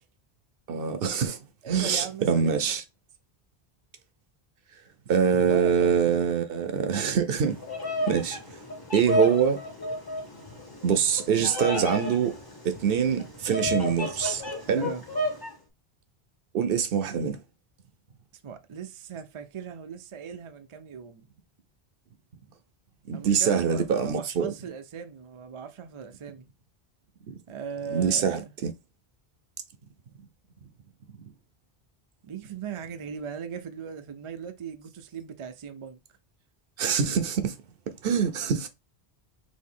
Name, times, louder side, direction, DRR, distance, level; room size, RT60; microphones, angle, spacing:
voice 1, 0.7-1.4 1.7-2.8 5.1-7.6 8.1-8.4 8.9-9.6 10.8-12.4 12.6-14.4 14.7-14.9 16.5-17.4 23.1-24.5 27.3-27.4 27.9-28.7 36.8-37.5 38.0-38.7, right 7 dB, 65° right, 0.8 m, -24 dB
voice 2, 1.6-2.7 5.2-6.0 14.8-15.0 18.4-21.3 23.1-26.5 27.5-28.5 32.2-36.0, right 7 dB, 45° right, 0.4 m, -38 dB
Bird vocalization bird call bird song, 7.5-15.5, left 1 dB, 20° left, 1.2 m, -32 dB
4.1 x 2.7 x 3.6 m
omnidirectional pair, 1.1 m